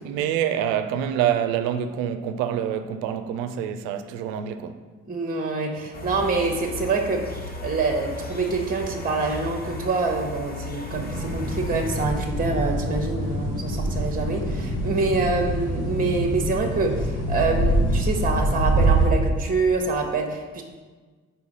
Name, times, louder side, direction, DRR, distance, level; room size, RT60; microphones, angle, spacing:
voice 1, 0.0-4.8, right 9 dB, 85° right, 0.5 m, -26 dB
voice 2, 5.1-7.2 7.6-20.6, right 3 dB, 25° right, 1.0 m, -26 dB
sound 1, 5.9-12.1, left 3 dB, 25° left, 1.0 m, -36 dB
sound 2, 10.9-19.1, right 1 dB, 65° left, 1.3 m, -25 dB
4.7 x 4.4 x 5.3 m
hypercardioid pair, 50°, 33 cm